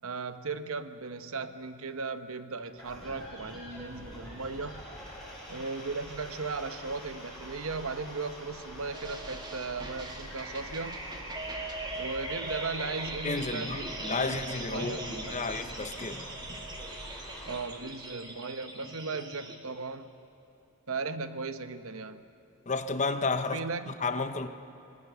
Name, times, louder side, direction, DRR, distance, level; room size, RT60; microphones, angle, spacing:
voice 1, 0.0-4.8 5.5-11.0 11.9-15.6 17.5-20.1 20.9-22.2 23.5-23.9, right 4 dB, 65° right, 1.0 m, -37 dB
sound 1, 2.8-17.6, equal, ahead, 7.1 m, -45 dB
sound 2, 8.9-19.6, right 2 dB, 20° right, 2.0 m, -40 dB
voice 2, 13.2-16.2 22.7-23.6 24.0-24.5, left 3 dB, 35° left, 0.9 m, -32 dB
25.5 x 20.5 x 6.9 m
head